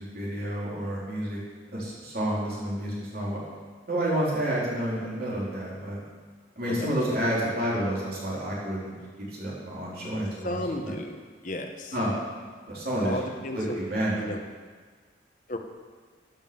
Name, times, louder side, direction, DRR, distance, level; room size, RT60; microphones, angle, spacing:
voice 1, 0.0-1.4 1.7-3.4 3.9-6.0 6.6-9.0 9.4-10.6 10.8-10.9 11.9-12.1 12.7-13.2 13.5-14.2, right 1 dB, 50° right, -7 dB, 4.0 m, -29 dB
voice 2, 10.4-11.2 11.4-11.9 13.0-13.8 14.2-14.4 15.5-15.6, left 1 dB, 40° left, 4 dB, 1.1 m, -33 dB
13.0 x 7.2 x 7.0 m, 1.5 s
head